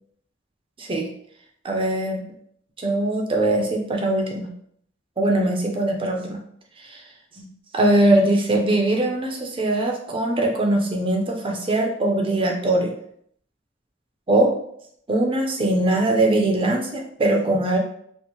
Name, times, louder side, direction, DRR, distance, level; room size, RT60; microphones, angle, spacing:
voice 1, 1.6-2.2 2.8-4.5 5.2-6.4 6.8-7.0 7.4-12.9 14.3-14.5 15.1-17.8, right 1 dB, 30° right, 1 dB, 0.5 m, -21 dB
4.3 x 2.1 x 2.9 m, 0.68 s
head